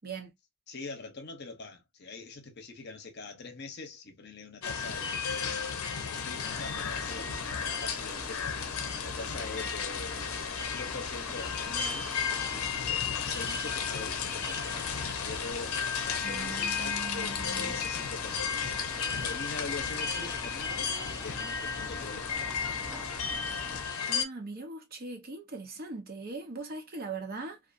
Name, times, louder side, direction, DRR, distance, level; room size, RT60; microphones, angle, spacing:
voice 1, 0.0-0.3 16.2-17.8 24.1-27.6, right 3 dB, 45° right, 0.7 m, -40 dB
voice 2, 0.7-5.3 6.1-7.5 7.8-8.5 9.0-10.2 10.7-14.8 15.1-15.8 16.0-18.6 19.0-20.9 21.2-22.5, left 3 dB, 50° left, 0.8 m, -43 dB
sound 1, 4.6-24.2, left 6 dB, 85° left, 0.6 m, -33 dB
Engine, 6.5-23.8, equal, 5° right, 0.5 m, -46 dB
2.5 x 2.4 x 2.4 m
head